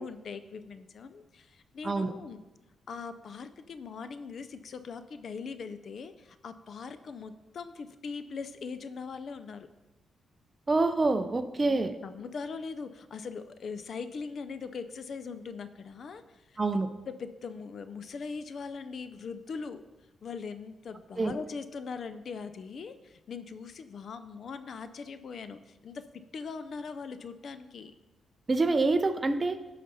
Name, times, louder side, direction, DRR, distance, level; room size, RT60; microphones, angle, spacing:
voice 1, 0.0-2.4 2.9-9.7 11.6-16.6 17.1-19.8 20.2-26.0 26.3-27.9, left 5 dB, 55° left, 11 dB, 0.5 m, -41 dB
voice 2, 10.7-11.9 16.6-16.9 21.2-21.3 28.5-29.6, right 3 dB, 25° right, 9 dB, 0.6 m, -26 dB
13.5 x 5.0 x 4.1 m, 1.1 s
cardioid pair, 105°, 0 cm